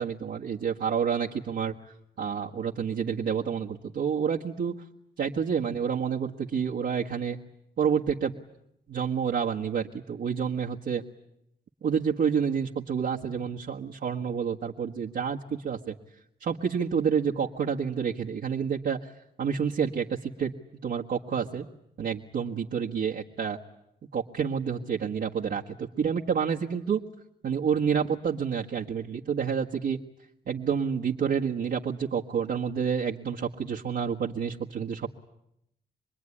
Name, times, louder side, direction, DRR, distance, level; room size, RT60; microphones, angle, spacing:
voice 1, 0.0-1.7 2.2-4.7 5.2-7.4 7.8-8.3 8.9-11.0 11.8-15.9 16.4-19.1 19.4-20.5 20.8-21.7 22.0-23.6 24.1-27.0 27.4-30.0 30.5-35.1, right 7 dB, 70° right, -3 dB, 1.6 m, -29 dB
27.0 x 21.5 x 10.0 m, 0.81 s
cardioid pair, 95°, 18 cm